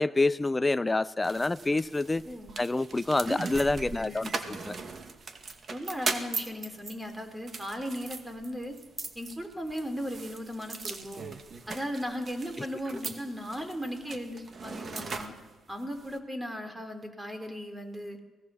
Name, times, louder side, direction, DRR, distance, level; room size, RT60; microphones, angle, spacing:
voice 1, 0.0-2.2 2.6-4.8, left 2 dB, 15° left, 0.7 m, -27 dB
sound 1, 1.2-16.2, right 4 dB, 40° right, 2.2 m, -40 dB
voice 2, 2.2-2.6 3.2-3.4 3.9-4.3 5.7-8.8 9.2-11.3 11.7-15.3 15.7-18.2, equal, 10° right, 3.9 m, -37 dB
24.0 x 18.5 x 7.2 m
cardioid pair, 90°, 0 cm